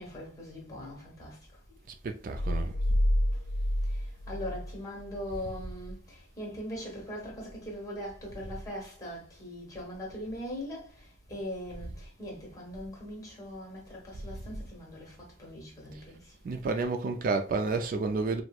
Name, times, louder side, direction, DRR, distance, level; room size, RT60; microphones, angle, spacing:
voice 1, 0.0-1.3 4.3-6.0 6.4-10.8 11.3-15.1 15.4-16.2, equal, 20° left, 1.2 m, -40 dB
voice 2, 2.0-2.8 16.4-18.4, right 3 dB, 50° right, 0.3 m, -30 dB
sound 1, 2.3-5.3, equal, 85° left, 0.4 m, -29 dB
4.3 x 2.1 x 2.3 m
head